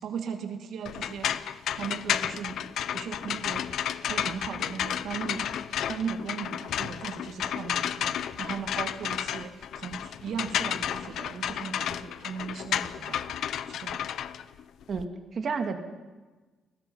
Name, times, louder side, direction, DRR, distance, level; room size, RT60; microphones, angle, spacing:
voice 1, 0.0-5.5 5.9-13.4 13.7-14.0, right 6 dB, 65° right, 5 dB, 2.4 m, -37 dB
sound 1, 0.9-15.1, left 10 dB, 65° left, 0.7 m, -32 dB
voice 2, 14.9-15.8, right 5 dB, 40° right, 6 dB, 2.1 m, -31 dB
29.0 x 19.5 x 5.6 m, 1.3 s
cardioid pair, 155°, 0 cm